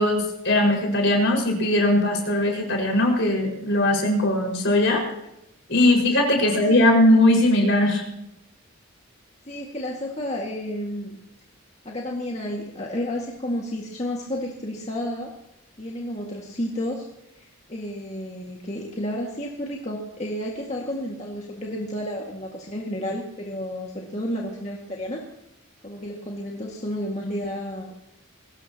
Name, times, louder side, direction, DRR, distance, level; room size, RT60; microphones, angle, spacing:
voice 1, 0.0-5.0 5.7-8.0, left 1 dB, 55° left, 1 dB, 5.4 m, -20 dB
voice 2, 6.4-6.9 9.5-11.2 11.9-15.3 15.8-17.1 17.3-25.2 25.8-28.0, left 1 dB, 30° left, -1 dB, 2.0 m, -31 dB
22.0 x 18.5 x 3.0 m, 0.87 s
head